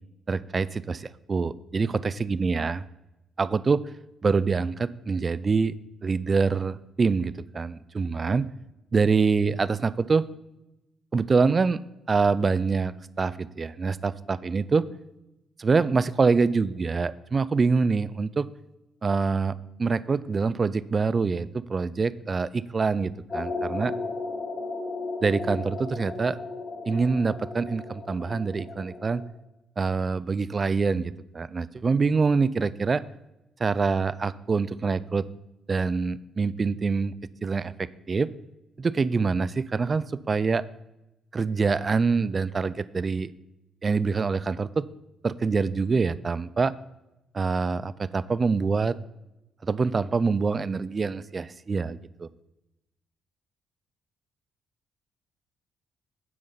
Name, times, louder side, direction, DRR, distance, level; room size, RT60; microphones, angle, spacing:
voice 1, 0.3-2.8 3.4-3.8 4.2-5.7 6.0-8.5 8.9-10.3 11.1-11.8 12.1-14.8 15.6-18.5 19.0-23.9 25.2-26.4 26.9-29.2 29.8-33.0 33.6-35.3 35.7-37.1 37.4-38.3 38.8-40.6 41.3-43.3 43.8-44.9 45.2-46.7 47.3-49.0 49.6-52.3, right 4 dB, 35° right, 17 dB, 0.4 m, -25 dB
sound 1, 23.3-29.3, left 3 dB, 40° left, 2.1 m, -35 dB
9.8 x 7.6 x 4.0 m, 0.94 s
cardioid pair, 90°, 0 cm